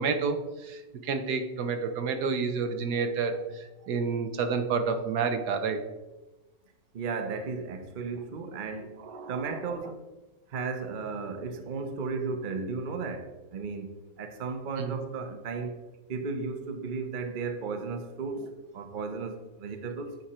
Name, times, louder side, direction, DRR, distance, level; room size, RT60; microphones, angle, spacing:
voice 1, 0.0-3.3 3.9-5.8 9.0-9.6 14.8-14.9, right 5 dB, 80° right, 1.4 m, -29 dB
voice 2, 6.9-8.9 9.3-10.1 10.5-15.8 16.1-18.5 18.7-20.2, right 4 dB, 45° right, 0.7 m, -35 dB
9.2 x 4.9 x 4.3 m
omnidirectional pair, 1.7 m